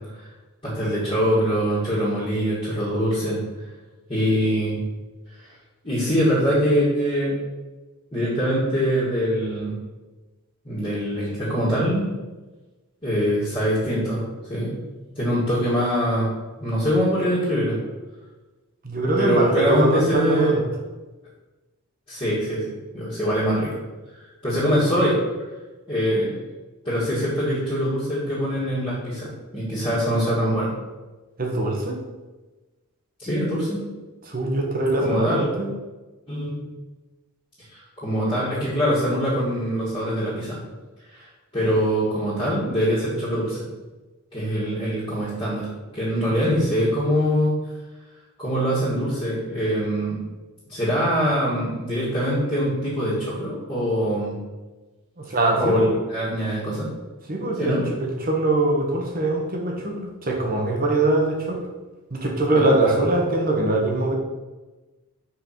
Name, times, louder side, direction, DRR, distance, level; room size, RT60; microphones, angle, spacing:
voice 1, 0.6-3.4 4.1-4.8 5.3-5.5 5.8-7.3 8.1-9.8 10.6-12.1 13.0-14.8 15.2-16.3 16.6-17.8 19.2-20.5 22.1-23.7 24.4-25.2 25.9-26.4 26.8-30.7 33.2-33.8 35.0-35.5 36.3-36.6 37.7-40.6 41.1-43.7 44.3-45.7 45.9-47.5 48.4-50.2 50.7-54.4 55.6-56.9 57.5-57.8 62.5-62.9, equal, 25° left, -10 dB, 2.2 m, -23 dB
voice 2, 18.8-20.6 31.4-32.0 34.3-35.7 55.2-55.9 57.3-61.7 62.1-64.1, right 2 dB, 40° right, 0 dB, 1.4 m, -22 dB
5.8 x 4.7 x 6.0 m, 1.2 s
head